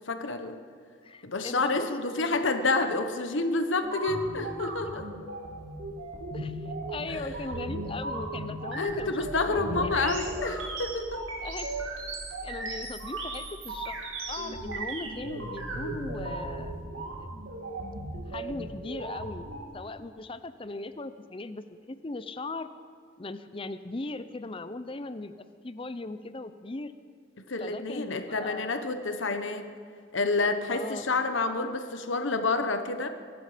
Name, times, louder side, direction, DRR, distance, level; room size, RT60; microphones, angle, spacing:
voice 1, 0.1-0.6 1.2-5.0 7.1-7.3 8.7-11.2 27.5-29.7 30.1-33.1, left 3 dB, 75° left, 8 dB, 1.1 m, -29 dB
voice 2, 1.0-2.5 6.3-6.6 6.9-9.2 9.5-10.2 11.4-11.7 12.4-14.0 14.3-16.7 17.2-17.3 18.1-19.5 19.7-22.7 23.2-25.3 25.6-26.9 27.6-28.7 30.7-31.1, left 2 dB, 25° left, 12 dB, 0.6 m, -39 dB
sound 1, 3.8-19.7, right 2 dB, 85° right, 2.6 m, -37 dB
sound 2, 8.9-16.8, equal, 10° right, 1.6 m, -47 dB
24.0 x 12.0 x 5.1 m, 2.1 s
head